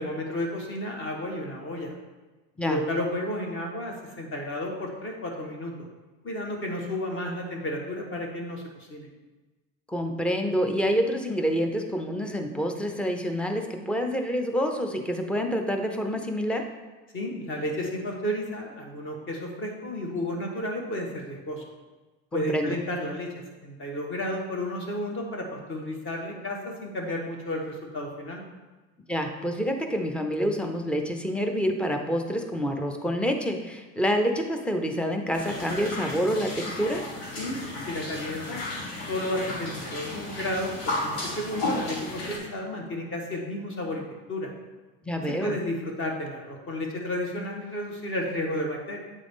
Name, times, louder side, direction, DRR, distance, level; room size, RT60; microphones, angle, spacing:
voice 1, 0.0-1.9 2.6-5.7 6.2-9.1 17.1-21.6 22.3-28.4 37.4-38.6 39.0-44.0 44.3-44.5 45.3-49.0, left 1 dB, 35° left, 1 dB, 1.3 m, -32 dB
voice 2, 9.9-16.6 22.3-22.8 29.1-37.0 45.0-45.6, equal, 5° left, 4 dB, 0.5 m, -27 dB
sound 1, 35.3-42.4, left 2 dB, 75° left, 1.7 m, -34 dB
8.5 x 3.8 x 3.5 m, 1.2 s
cardioid pair, 125°, 35 cm